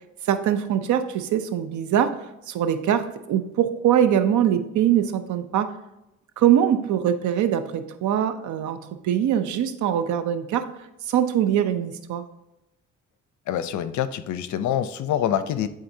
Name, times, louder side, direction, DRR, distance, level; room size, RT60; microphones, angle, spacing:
voice 1, 0.2-2.1 2.5-5.7 6.4-8.8 9.0-10.7 11.1-12.2, right 10 dB, 75° right, 10 dB, 0.7 m, -22 dB
voice 2, 13.5-15.7, left 10 dB, 70° left, 12 dB, 0.6 m, -25 dB
11.0 x 3.9 x 2.7 m, 0.91 s
cardioid pair, 90°, 30 cm